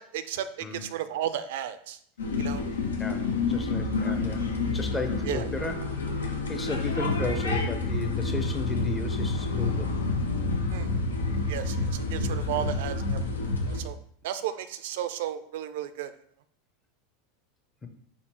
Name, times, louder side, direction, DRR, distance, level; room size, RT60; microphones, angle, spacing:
voice 1, 0.0-0.5 0.7-2.0 2.4-2.6 5.3-5.5 10.7-10.9 11.5-13.3 13.7-14.0 14.2-16.1, right 11 dB, 70° right, 12 dB, 0.3 m, -33 dB
sound 1, 2.2-13.8, left 3 dB, 90° left, 0.7 m, -29 dB
voice 2, 3.0-10.0, left 3 dB, 20° left, 6 dB, 0.7 m, -34 dB
4.3 x 4.0 x 2.9 m, 0.64 s
hypercardioid pair, 90°, 0 cm